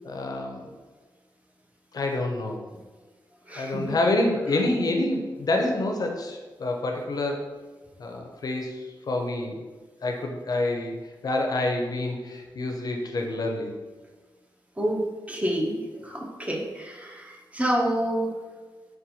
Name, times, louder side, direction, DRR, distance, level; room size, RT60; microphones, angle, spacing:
voice 1, 0.0-0.7 1.9-2.6 3.5-7.4 8.0-9.6 10.0-13.8, left 2 dB, 50° left, 2 dB, 0.4 m, -27 dB
voice 2, 3.5-4.0 14.8-18.3, right 1 dB, 15° right, 0 dB, 0.5 m, -28 dB
4.1 x 2.2 x 2.6 m, 1.3 s
wide cardioid pair, 95°, 8 cm